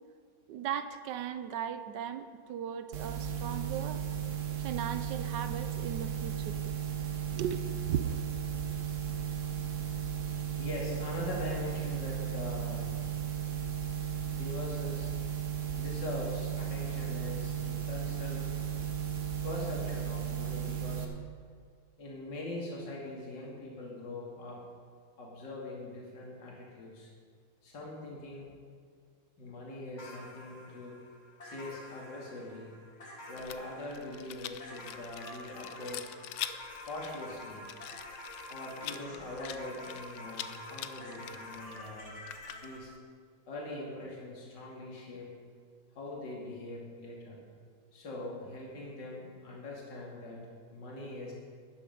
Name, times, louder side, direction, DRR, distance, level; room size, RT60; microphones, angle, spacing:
voice 1, 0.5-4.0 4.6-6.7 7.4-7.6 7.9-8.1, right 9 dB, 70° right, 10 dB, 1.1 m, -37 dB
sound 1, 2.9-21.0, right 9 dB, 45° right, 1.3 m, -35 dB
voice 2, 10.6-12.9 13.5-13.7 14.4-15.1 15.8-18.5 19.4-21.1 22.0-24.6 25.2-27.1 27.6-28.5 29.4-31.0 31.4-32.7 33.3-36.1 36.8-37.6 38.5-42.1 42.6-42.9 43.5-45.3 45.9-47.4 47.9-50.4 50.7-51.3, left 2 dB, 60° left, -4 dB, 3.0 m, -42 dB
sound 2, 30.0-42.8, left 1 dB, 35° left, 2.0 m, -48 dB
Rattle, 33.4-43.0, left 12 dB, 80° left, 1.4 m, -45 dB
12.5 x 10.0 x 5.4 m, 2.1 s
omnidirectional pair, 2.2 m